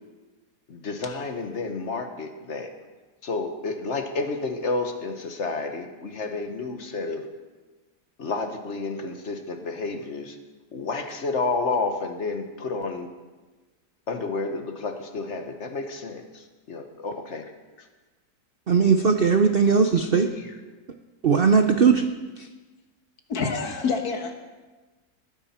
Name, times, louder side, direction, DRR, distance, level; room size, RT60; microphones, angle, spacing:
voice 1, 0.7-2.7 3.2-7.2 8.2-10.4 10.7-13.1 14.1-17.5 20.3-20.4, left 3 dB, 45° left, 5 dB, 1.4 m, -30 dB
voice 2, 18.7-20.3 21.2-22.1 22.4-22.5, right 5 dB, 55° right, 6 dB, 0.6 m, -19 dB
voice 3, 23.3-24.3, left 5 dB, 60° left, 5 dB, 1.8 m, -27 dB
20.0 x 9.8 x 4.4 m, 1.3 s
omnidirectional pair, 1.8 m